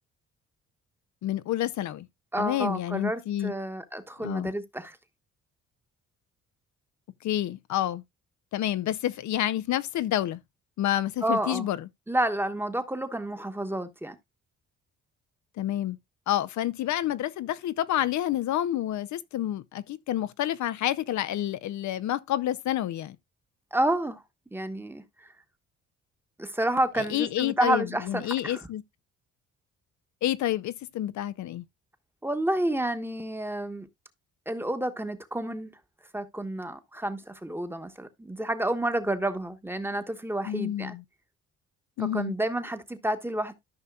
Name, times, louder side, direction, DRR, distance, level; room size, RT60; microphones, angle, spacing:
voice 1, 1.2-2.1 2.4-3.5 4.2-4.5 7.2-8.0 8.5-10.4 10.8-11.9 15.6-16.0 16.3-23.2 27.0-28.8 30.2-31.7 40.5-41.0 42.0-42.3, left 13 dB, 70° left, 0.6 m, -29 dB
voice 2, 2.3-5.0 11.2-11.7 12.1-14.2 23.7-24.2 24.5-25.0 26.4-28.6 32.2-33.9 34.5-35.8 36.1-40.9 42.0-43.6, right 1 dB, 5° right, 1.1 m, -30 dB
13.5 x 5.5 x 2.3 m
cardioid pair, 90°, 30 cm